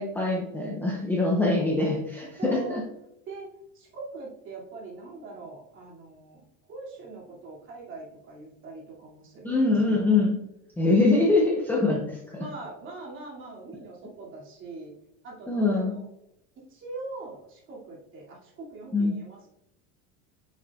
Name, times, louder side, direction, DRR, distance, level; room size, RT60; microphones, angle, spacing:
voice 1, 0.0-2.8 9.4-10.4 10.8-12.0 15.5-15.9 18.9-19.1, left 3 dB, 5° left, -3 dB, 0.6 m, -23 dB
voice 2, 2.4-2.8 3.3-6.4 6.7-10.2 11.9-12.0 12.4-14.9 15.2-16.0 16.7-19.5, right 3 dB, 35° right, -4 dB, 2.5 m, -42 dB
9.1 x 6.1 x 2.4 m, 0.86 s
cardioid pair, 165°, 35 cm